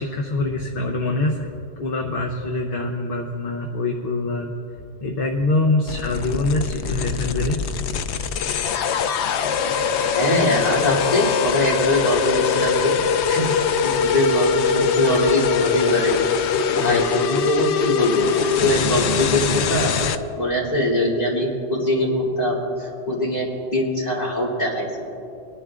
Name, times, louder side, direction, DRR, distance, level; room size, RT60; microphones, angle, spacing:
voice 1, 0.0-1.5 1.8-4.5 5.0-7.6 16.8-17.0, left 2 dB, 60° left, 2 dB, 1.0 m, -24 dB
sound 1, 5.9-20.2, left 6 dB, 90° left, 0.9 m, -22 dB
voice 2, 10.1-12.9 13.3-16.3 16.7-19.9 20.4-25.0, left 1 dB, 40° left, -6 dB, 2.9 m, -22 dB
24.5 x 11.0 x 2.5 m, 2.7 s
omnidirectional pair, 1.1 m